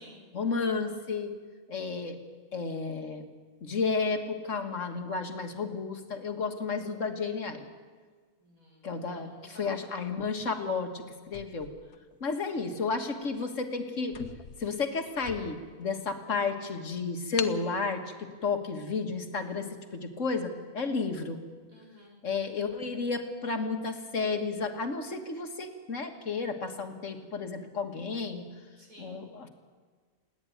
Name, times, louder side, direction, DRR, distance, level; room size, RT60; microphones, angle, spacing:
voice 1, 0.3-1.3 1.7-2.2 2.5-3.2 3.6-7.7 8.8-9.3 9.6-11.7 12.2-14.2 14.6-21.4 22.2-28.5 29.0-29.5, left 4 dB, 60° left, 5 dB, 1.9 m, -32 dB
voice 2, 8.4-9.9 21.7-22.2 28.8-29.1, right 1 dB, 70° right, -1 dB, 5.7 m, -54 dB
sound 1, 11.2-12.6 13.2-13.4 13.7-13.8 14.1-15.8 16.3-16.4 17.4-17.7, left 8 dB, 90° left, 1.4 m, -41 dB
28.0 x 10.0 x 9.2 m, 1.5 s
omnidirectional pair, 1.5 m